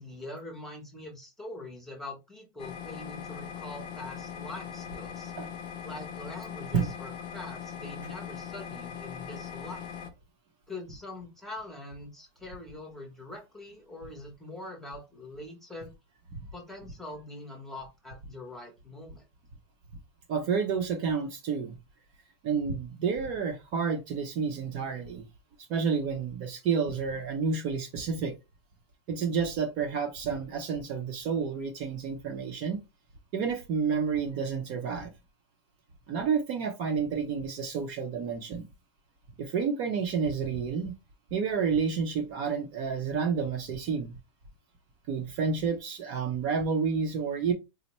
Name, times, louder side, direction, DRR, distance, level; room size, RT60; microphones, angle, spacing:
voice 1, 0.0-5.3 5.8-9.8 10.7-15.9 16.5-19.2, left 2 dB, ahead, 0.9 m, -43 dB
sound 1, 2.6-10.1, left 8 dB, 30° left, 0.7 m, -40 dB
voice 2, 20.3-21.8 22.4-25.3 25.7-28.3 29.1-32.8 33.3-35.1 36.1-38.7 39.4-40.9 41.3-44.2 45.1-47.5, right 6 dB, 35° right, 0.7 m, -30 dB
4.2 x 2.1 x 2.9 m
supercardioid pair, 155°, 16 cm